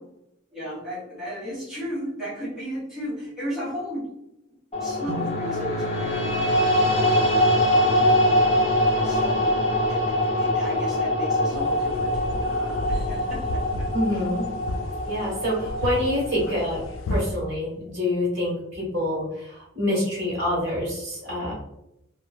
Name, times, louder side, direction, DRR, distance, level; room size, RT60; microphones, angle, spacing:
voice 1, 0.5-4.1 4.8-8.0 8.9-9.5 9.9-14.2, equal, 5° right, -10 dB, 1.1 m, -35 dB
sound 1, 4.7-16.9, left 1 dB, 30° left, 0.6 m, -23 dB
sound 2, 5.1-13.5, right 5 dB, 20° right, 0.6 m, -42 dB
sound 3, 11.5-17.4, left 2 dB, 75° left, 0.3 m, -33 dB
voice 2, 13.9-14.4 15.1-16.8 17.1-21.5, left 1 dB, 60° right, -6 dB, 1.3 m, -26 dB
3.0 x 2.0 x 2.3 m, 0.83 s
head